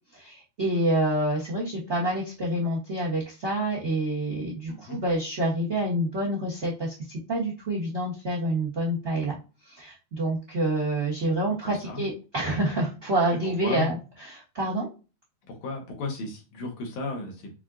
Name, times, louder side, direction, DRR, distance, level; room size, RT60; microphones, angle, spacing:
voice 1, 0.1-6.9 7.3-9.3 9.6-14.9, right 1 dB, 65° right, -3 dB, 0.6 m, -27 dB
voice 2, 4.7-5.0 11.6-12.0 13.3-13.9 15.5-17.5, left 3 dB, 75° left, 2 dB, 2.6 m, -34 dB
6.1 x 2.4 x 2.3 m, 0.31 s
omnidirectional pair, 3.5 m